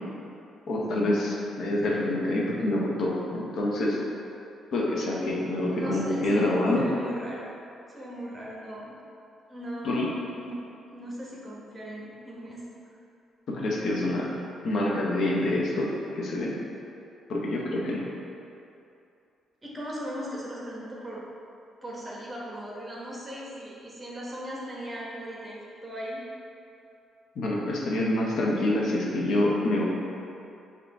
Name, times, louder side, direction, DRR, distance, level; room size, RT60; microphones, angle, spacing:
voice 1, 0.7-4.0 4.7-6.9 9.8-10.1 13.5-14.3 14.6-16.5 17.3-18.0 27.4-29.8, left 1 dB, 65° left, -3 dB, 0.7 m, -26 dB
voice 2, 5.7-7.5 7.9-8.9 9.5-10.5 10.9-12.7 19.6-21.3 21.8-26.2, equal, 20° right, -5 dB, 1.0 m, -38 dB
5.0 x 2.9 x 3.4 m, 2.6 s
cardioid pair, 90°, 0 cm